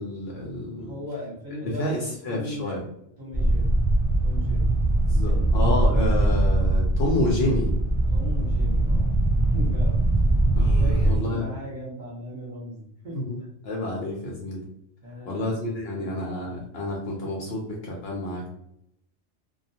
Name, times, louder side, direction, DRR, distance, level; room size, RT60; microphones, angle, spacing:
voice 1, 0.0-0.9 1.6-2.8 5.1-7.7 10.5-11.4 13.1-13.4 13.6-14.6 15.3-18.5, left 1 dB, 65° left, -2 dB, 0.7 m, -29 dB
voice 2, 0.8-2.9 3.2-3.7 4.2-4.7 5.2-5.5 8.1-9.1 9.5-10.0 10.5-13.2 15.0-15.6 15.9-16.1, left 1 dB, 40° right, -5 dB, 1.0 m, -38 dB
sound 1, 3.3-11.2, right 1 dB, 5° right, 0.5 m, -21 dB
2.3 x 2.2 x 2.7 m, 0.75 s
omnidirectional pair, 1.3 m